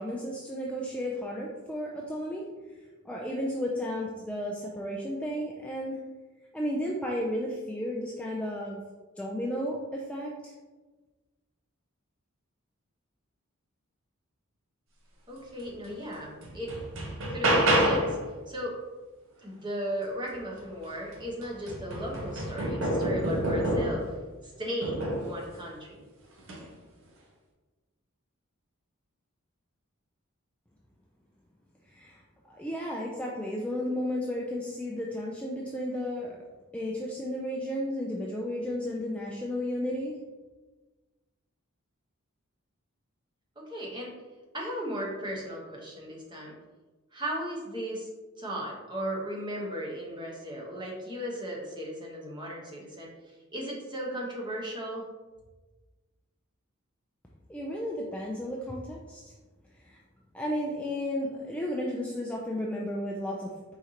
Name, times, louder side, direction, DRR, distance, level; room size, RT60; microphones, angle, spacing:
voice 1, 0.0-2.4 3.0-6.0 6.5-8.8 9.2-10.5 31.9-32.2 32.5-36.3 36.7-40.1 57.5-59.3 59.8-60.0 60.3-63.8, equal, 5° left, -3 dB, 0.3 m, -33 dB
voice 2, 15.3-16.7 17.3-18.2 18.5-18.8 19.4-24.1 24.4-26.0 43.6-44.2 44.5-46.5 47.1-48.1 48.4-53.1 53.5-55.0, equal, 20° right, -3 dB, 1.0 m, -36 dB
sound 1, 15.8-15.9 16.4-18.2 20.6-20.7 21.1-24.1 24.8-25.4 26.4-26.6, right 1 dB, 65° right, 0.8 m, -28 dB
4.5 x 3.7 x 2.8 m, 1.3 s
head